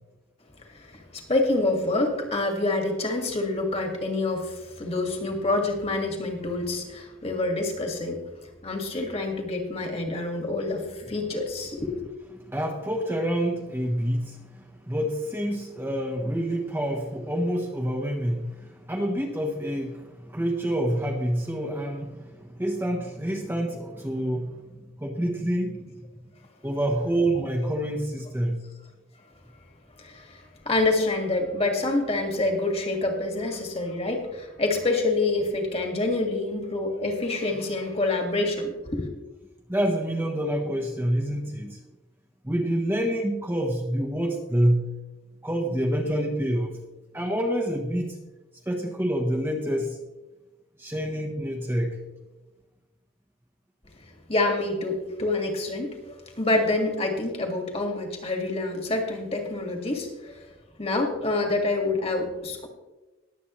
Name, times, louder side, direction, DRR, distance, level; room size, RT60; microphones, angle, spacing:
voice 1, 0.7-8.2 8.6-12.0 30.0-39.1 54.3-60.5 60.8-62.7, left 2 dB, 30° left, 3 dB, 1.9 m, -27 dB
voice 2, 12.3-14.4 14.9-24.6 25.0-25.9 26.6-28.6 39.7-41.8 42.4-44.9 45.4-46.8 47.1-48.2 48.7-50.0 50.8-52.0, right 1 dB, 10° right, 0 dB, 1.1 m, -27 dB
21.0 x 8.0 x 3.1 m, 1.1 s
head